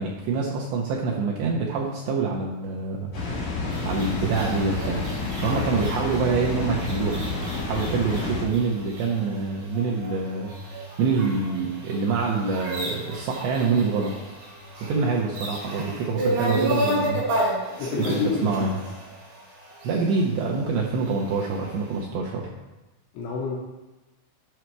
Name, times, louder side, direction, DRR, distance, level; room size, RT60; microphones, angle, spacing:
voice 1, 0.0-3.1 3.9-5.0 5.4-7.2 7.7-14.1 14.8-17.2 18.2-18.7 19.8-22.5, right 4 dB, 80° right, -3 dB, 2.6 m, -26 dB
Water, 3.1-8.4, left 3 dB, 40° left, 2.6 m, -29 dB
sound 1, 3.7-21.6, right 1 dB, 45° right, 4.4 m, -33 dB
voice 2, 17.8-18.7 23.1-23.6, left 5 dB, 75° left, -2 dB, 3.3 m, -28 dB
9.8 x 6.3 x 4.6 m, 1.1 s
omnidirectional pair, 6.0 m